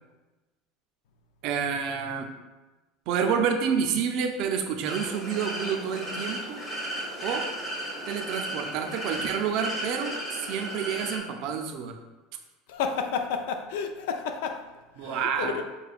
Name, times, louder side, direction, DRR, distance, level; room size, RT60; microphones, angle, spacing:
voice 1, 1.4-2.3 3.1-6.6 7.2-7.5 8.1-12.0 15.0-15.6, right 7 dB, 60° right, 0.5 m, -29 dB
sound 1, 4.9-11.2, right 1 dB, 20° left, 1.5 m, -35 dB
voice 2, 12.7-14.7 15.0-15.5, left 6 dB, 80° left, 0.4 m, -31 dB
6.7 x 2.2 x 2.4 m
supercardioid pair, 125°, 0 cm